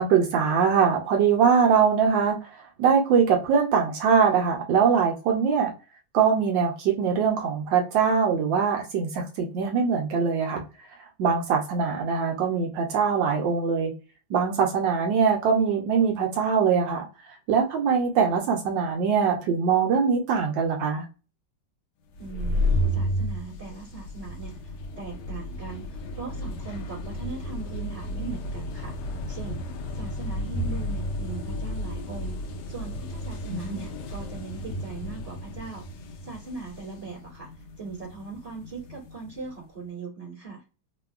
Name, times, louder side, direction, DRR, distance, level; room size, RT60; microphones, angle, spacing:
voice 1, 0.0-2.4 2.8-5.7 6.1-10.6 11.2-13.9 14.3-17.0 17.5-21.0 33.5-33.8, right 6 dB, 75° right, 1.3 m, -22 dB
sound 1, 22.1-39.5, left 1 dB, 75° left, 1.1 m, -32 dB
voice 2, 22.2-22.6 22.9-29.6 29.9-32.3 32.7-35.8 36.2-37.5 37.8-40.6, right 4 dB, 20° right, 1.2 m, -39 dB
3.5 x 2.2 x 2.3 m
omnidirectional pair, 2.1 m